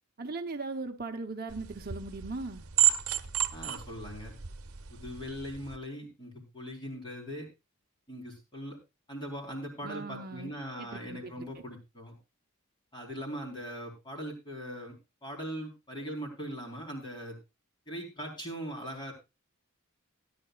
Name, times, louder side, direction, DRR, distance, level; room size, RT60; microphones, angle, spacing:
voice 1, 0.2-2.7 9.8-10.5 10.8-11.5, right 3 dB, 45° right, 5 dB, 0.9 m, -38 dB
sound 1, 1.5-5.8, right 11 dB, 80° right, 0.9 m, -32 dB
voice 2, 3.5-4.3 4.9-7.5 8.1-8.8 9.1-12.2 12.9-14.9 15.2-17.4 17.9-19.1, equal, 20° left, 1 dB, 4.2 m, -40 dB
17.5 x 10.5 x 2.4 m, 0.26 s
head